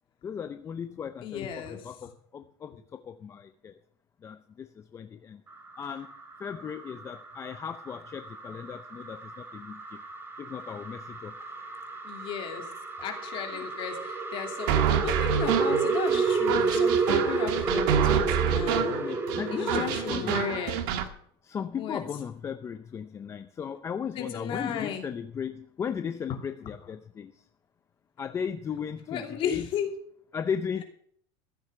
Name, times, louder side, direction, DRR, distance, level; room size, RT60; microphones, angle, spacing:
voice 1, 0.2-3.8 4.2-5.4 5.8-6.1 6.4-10.0 10.4-11.5 13.5-13.7 18.9-20.5 21.4-27.4 28.2-29.7 30.3-30.8, left 7 dB, 20° left, 9 dB, 0.5 m, -36 dB
voice 2, 1.2-1.8 12.0-12.6 13.0-14.7 15.0-18.9 19.5-20.8 21.8-22.0 24.2-25.0 29.1-29.9, left 8 dB, 45° left, 3 dB, 2.8 m, -34 dB
sound 1, 5.5-20.6, right 4 dB, 15° right, 2.1 m, -31 dB
sound 2, 14.7-21.1, right 9 dB, 70° right, 1.6 m, -27 dB
14.5 x 8.0 x 6.7 m, 0.63 s
cardioid pair, 150°, 13 cm